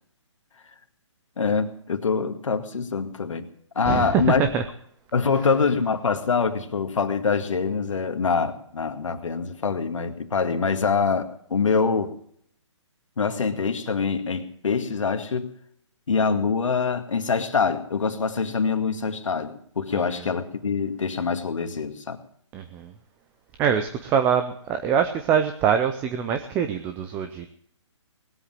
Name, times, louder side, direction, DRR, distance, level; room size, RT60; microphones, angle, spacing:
voice 1, 1.4-3.5 3.8-4.4 5.1-12.1 13.2-15.5 16.1-22.2, left 5 dB, 80° left, 7 dB, 2.0 m, -24 dB
voice 2, 3.9-4.6 19.9-20.3 22.5-22.9 23.6-27.5, right 8 dB, 10° right, 8 dB, 0.5 m, -24 dB
19.5 x 8.1 x 7.6 m, 0.65 s
hypercardioid pair, 160°, 16 cm